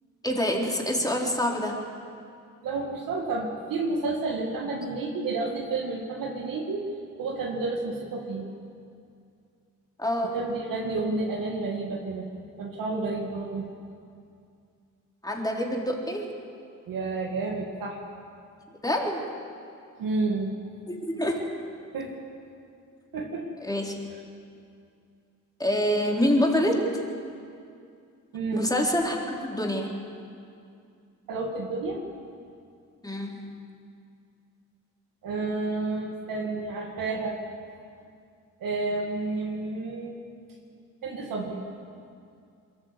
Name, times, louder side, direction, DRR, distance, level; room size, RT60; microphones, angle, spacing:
voice 1, 0.2-1.8 10.0-10.4 15.2-16.3 18.8-19.2 20.9-21.5 23.6-24.0 25.6-27.0 28.5-29.9 33.0-33.6, equal, 10° left, -1 dB, 3.9 m, -26 dB
voice 2, 2.6-6.9 7.2-8.4 10.3-12.3 12.6-13.7 16.9-18.0 20.0-20.5 21.9-22.2 23.1-23.4 24.1-24.2 28.3-28.7 31.3-32.0 35.2-37.4 38.6-40.2 41.0-41.6, right 3 dB, 75° right, -1 dB, 2.4 m, -30 dB
22.5 x 14.0 x 8.3 m, 2.4 s
supercardioid pair, 65°, 33 cm